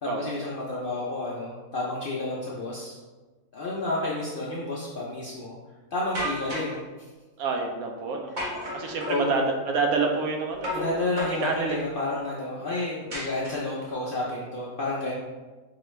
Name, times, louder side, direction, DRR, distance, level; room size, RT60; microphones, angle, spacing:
voice 1, 0.0-3.0 3.5-5.6 5.9-6.8 8.8-9.5 10.7-15.1, left 2 dB, 60° left, -5 dB, 0.5 m, -31 dB
sound 1, 6.1-6.8 8.4-9.3 10.6-10.9 11.2-11.9 13.1-13.9, equal, 40° right, 0.8 m, -33 dB
voice 2, 7.4-8.3 8.7-10.9 11.4-11.8, right 4 dB, 80° right, 2 dB, 1.1 m, -27 dB
4.8 x 2.3 x 3.1 m, 1.3 s
omnidirectional pair, 1.5 m